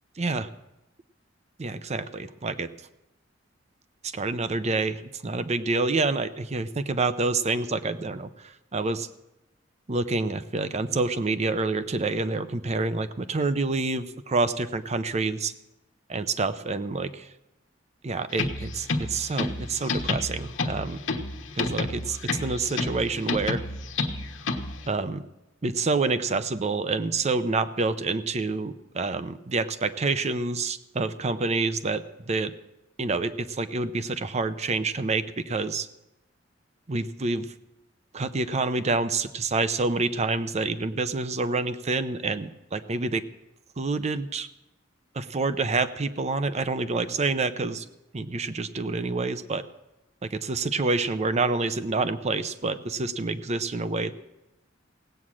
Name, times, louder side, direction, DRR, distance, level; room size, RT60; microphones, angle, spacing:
voice 1, 0.2-0.5 1.6-2.7 4.0-8.3 8.7-9.1 9.9-15.5 16.1-17.3 18.0-21.0 21.6-23.6 24.9-25.2 25.6-32.5 33.0-35.9 36.9-37.5 38.1-43.2 43.8-44.5 45.1-47.8 48.1-49.6 50.2-54.1, right 3 dB, 35° right, 12 dB, 0.6 m, -27 dB
sound 1, 18.3-24.9, left 3 dB, 85° left, 1.2 m, -30 dB
17.0 x 8.6 x 6.2 m, 0.95 s
head